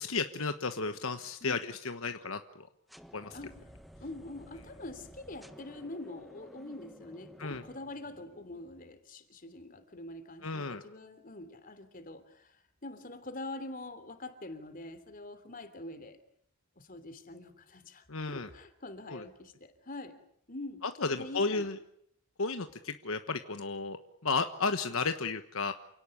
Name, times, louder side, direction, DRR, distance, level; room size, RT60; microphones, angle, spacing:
voice 1, 0.0-2.7 3.1-3.4 7.4-7.6 10.4-10.8 18.1-18.5 19.1-19.2 20.8-21.8 22.4-25.7, left 4 dB, 70° left, 8 dB, 1.3 m, -33 dB
sound 1, 2.9-8.8, equal, ahead, 1.4 m, -54 dB
voice 2, 4.0-16.2 16.8-20.1 20.5-21.7, left 2 dB, 40° left, 10 dB, 3.2 m, -45 dB
28.5 x 18.0 x 10.0 m, 0.72 s
head